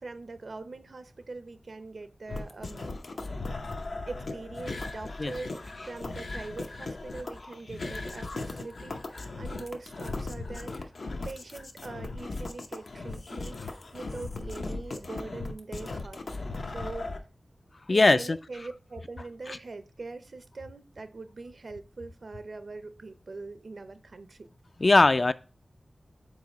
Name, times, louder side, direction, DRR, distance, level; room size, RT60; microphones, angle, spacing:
voice 1, 0.0-3.0 4.1-16.4 16.7-17.2 17.9-24.5, right 3 dB, 65° right, 0.6 m, -42 dB
sound 1, 2.3-17.2, left 3 dB, 75° left, 0.7 m, -37 dB
voice 2, 17.9-18.4 19.5-19.6 24.8-25.3, left 2 dB, 45° left, 0.3 m, -21 dB
4.8 x 4.1 x 5.2 m
wide cardioid pair, 85°, 0 cm